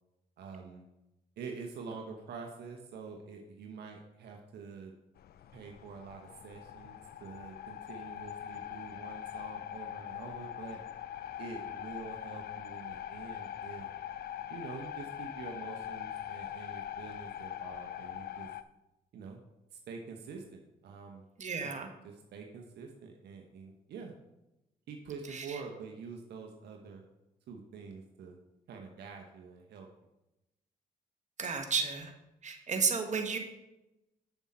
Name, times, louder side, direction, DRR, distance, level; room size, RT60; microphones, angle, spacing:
voice 1, 0.4-0.8 1.4-4.9 5.5-10.8 11.4-13.8 14.5-18.5 19.1-19.4 19.9-21.3 21.6-21.7 22.0-24.1 24.9-27.0 27.5-28.4 28.7-29.9, right 5 dB, 70° right, 2 dB, 1.0 m, -46 dB
sound 1, 5.2-18.6, left 10 dB, 65° left, 0.5 m, -42 dB
voice 2, 21.4-21.9 25.3-25.6 31.4-32.1 32.4-33.4, right 5 dB, 45° right, 5 dB, 1.3 m, -32 dB
7.1 x 7.0 x 4.3 m, 0.93 s
supercardioid pair, 50°, 17 cm